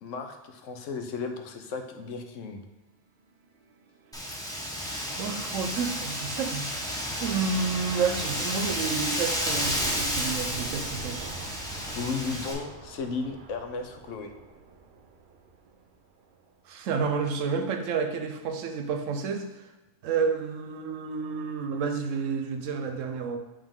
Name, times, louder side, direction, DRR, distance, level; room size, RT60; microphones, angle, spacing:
voice 1, 0.0-2.6 11.9-14.3, left 4 dB, 80° left, 5 dB, 1.0 m, -35 dB
sound 1, 3.3-16.7, right 4 dB, 55° right, 0.6 m, -46 dB
Wind, 4.1-12.5, equal, 5° left, 0.7 m, -32 dB
voice 2, 5.2-6.7 7.2-11.3 16.7-19.5 20.0-23.4, right 5 dB, 85° right, 6 dB, 1.0 m, -30 dB
7.3 x 3.6 x 3.6 m, 1.1 s
omnidirectional pair, 1.3 m